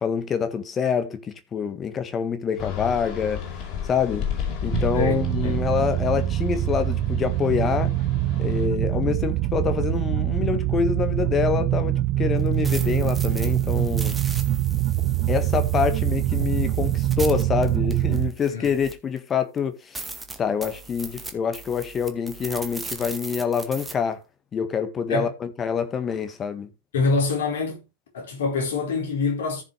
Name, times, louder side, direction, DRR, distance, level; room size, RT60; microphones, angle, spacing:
voice 1, 0.0-3.4 3.8-4.3 4.6-7.9 8.4-14.2 15.3-20.0 20.4-24.2 24.5-26.7, left 7 dB, 25° left, 1.7 m, -26 dB
sound 1, 2.6-8.7, left 8 dB, 40° left, 4.7 m, -33 dB
sound 2, 4.7-18.3, right 14 dB, 40° right, 0.8 m, -24 dB
voice 2, 4.9-5.7 18.5-18.7 25.1-25.3 26.9-27.8 28.1-29.6, left 4 dB, 60° left, 4.7 m, -25 dB
sound 3, 12.4-19.2 19.6-19.7 19.9-23.9, right 3 dB, 10° right, 1.9 m, -39 dB
14.5 x 6.7 x 3.4 m
figure-of-eight pair, 90°, 0 cm